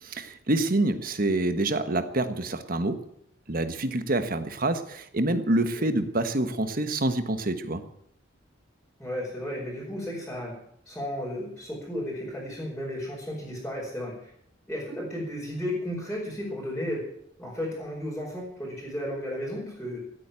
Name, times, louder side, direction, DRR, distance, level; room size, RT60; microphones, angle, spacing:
voice 1, 0.0-3.0 3.5-7.8, right 2 dB, 45° right, 10 dB, 1.4 m, -27 dB
voice 2, 9.0-10.5 10.8-14.3 14.7-17.0 17.4-20.0, left 1 dB, 5° left, -8 dB, 5.0 m, -34 dB
16.5 x 9.2 x 8.9 m, 0.70 s
head